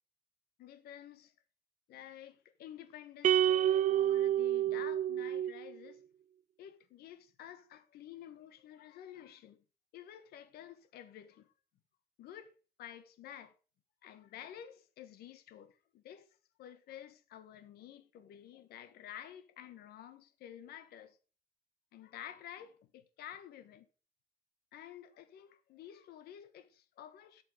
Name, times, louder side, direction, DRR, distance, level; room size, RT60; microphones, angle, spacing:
voice 1, 0.6-1.3 1.9-6.0 6.6-9.6 9.9-11.5 12.2-13.6 14.0-16.3 16.6-21.2 21.9-23.9 24.7-27.4, left 10 dB, 85° left, 1.5 m, -51 dB
sound 1, 3.2-5.7, right 11 dB, 50° right, 0.4 m, -29 dB
12.5 x 6.9 x 5.1 m
cardioid pair, 140°, 16 cm